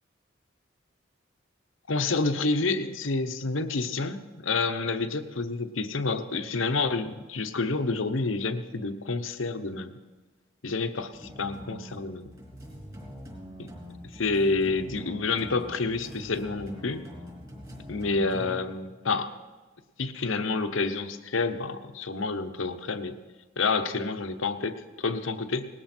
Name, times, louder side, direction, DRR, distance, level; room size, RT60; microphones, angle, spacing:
voice 1, 1.9-9.9 10.6-12.3 13.6-13.7 14.1-17.0 17.9-19.3 20.0-23.2 23.6-25.7, left 3 dB, 90° left, 9 dB, 1.0 m, -29 dB
sound 1, 11.1-18.6, equal, 20° right, 4.3 m, -43 dB
19.0 x 14.0 x 4.4 m, 1.3 s
head